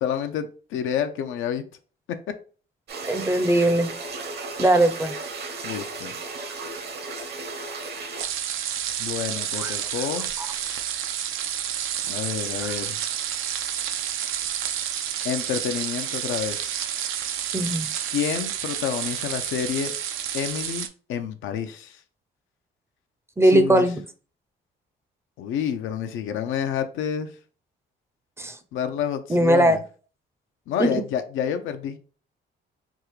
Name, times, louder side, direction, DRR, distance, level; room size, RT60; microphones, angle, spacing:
voice 1, 0.0-1.6 3.0-3.2 5.6-6.1 9.0-10.3 12.1-13.0 15.2-16.8 18.1-19.9 20.3-22.0 23.4-23.9 25.4-27.3 28.7-29.8 30.7-32.0, left 8 dB, 85° left, 0.5 m, -29 dB
sound 1, 2.9-8.2, right 3 dB, 55° right, 0.7 m, -35 dB
voice 2, 3.1-3.9 4.6-5.1 9.6-9.9 10.4-10.5 12.6-12.8 17.5-17.9 23.4-24.0 28.4-28.6 29.3-29.8 30.8-30.9, right 1 dB, 15° right, 0.4 m, -20 dB
sound 2, 8.2-20.9, right 10 dB, 90° right, 0.4 m, -30 dB
3.5 x 2.4 x 3.0 m
cardioid pair, 90°, 20 cm